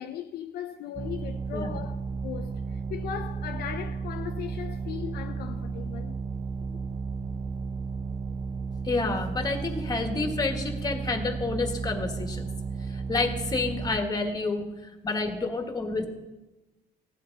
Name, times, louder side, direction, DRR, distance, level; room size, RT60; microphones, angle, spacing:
voice 1, 0.0-6.1, left 9 dB, 70° left, 0.7 m, -38 dB
sound 1, 0.9-14.0, right 5 dB, 20° right, 0.5 m, -33 dB
voice 2, 1.5-1.9 8.8-12.5 12.9-16.0, left 3 dB, 25° left, 1.8 m, -29 dB
16.0 x 10.5 x 4.0 m
cardioid pair, 110°, 17 cm